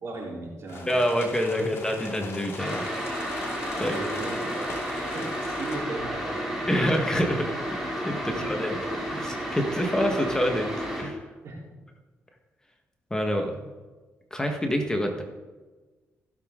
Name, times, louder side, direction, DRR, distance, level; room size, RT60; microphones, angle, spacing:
voice 1, 0.0-1.1 1.5-1.7 3.8-4.7 5.1-6.6 8.1-8.5 11.4-11.7 13.5-13.7, right 2 dB, 60° right, -3 dB, 3.9 m, -37 dB
sound 1, 0.7-5.8, left 3 dB, 50° left, 3.0 m, -40 dB
voice 2, 0.9-3.2 3.7-4.0 6.7-7.5 8.0-8.8 9.1-10.7 11.0-11.3 13.1-13.5 14.3-15.2, equal, 10° left, 3 dB, 1.6 m, -27 dB
sound 2, 2.6-11.0, equal, 5° right, 3.8 m, -32 dB
16.0 x 7.0 x 3.9 m, 1.3 s
cardioid pair, 80°, 5 cm